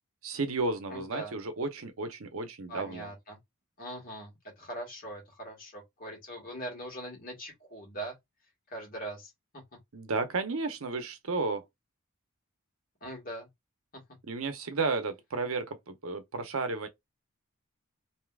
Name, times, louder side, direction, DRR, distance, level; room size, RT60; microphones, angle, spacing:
voice 1, 0.2-3.1 9.9-11.6 14.3-16.9, right 3 dB, 80° right, 0.8 m, -33 dB
voice 2, 0.9-1.3 2.7-3.4 3.8-8.2 8.7-9.6 13.0-13.5 13.9-14.0, right 1 dB, 40° left, 1.8 m, -41 dB
3.4 x 2.8 x 2.3 m
head